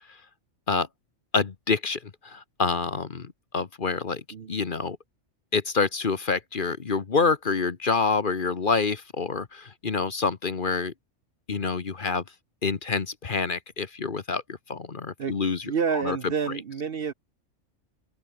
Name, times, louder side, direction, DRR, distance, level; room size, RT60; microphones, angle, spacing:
voice 1, 1.3-4.2 4.5-5.0 5.5-10.9 11.5-12.2 12.6-14.4 14.7-15.7 16.0-16.2, left 4 dB, 45° left, 1.2 m, -27 dB
voice 2, 15.6-17.1, right 6 dB, 50° right, 1.0 m, -28 dB
open air
omnidirectional pair, 1.3 m